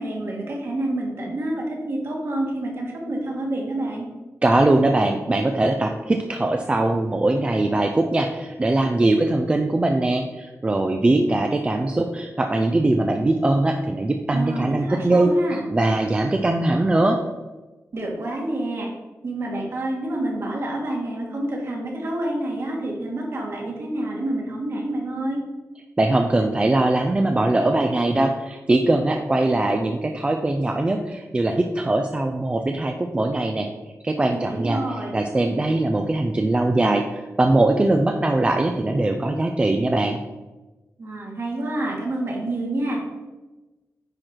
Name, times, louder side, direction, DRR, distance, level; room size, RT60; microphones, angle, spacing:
voice 1, 0.0-4.1 14.3-15.6 17.9-18.9 19.2-25.4 34.3-35.2 41.0-43.0, right 1 dB, 50° right, -1 dB, 2.0 m, -28 dB
voice 2, 4.4-17.2 26.0-33.7 34.0-34.8 35.1-40.2, right 2 dB, 20° right, 4 dB, 0.5 m, -21 dB
9.8 x 4.5 x 4.5 m, 1.1 s
wide cardioid pair, 180°, 6 cm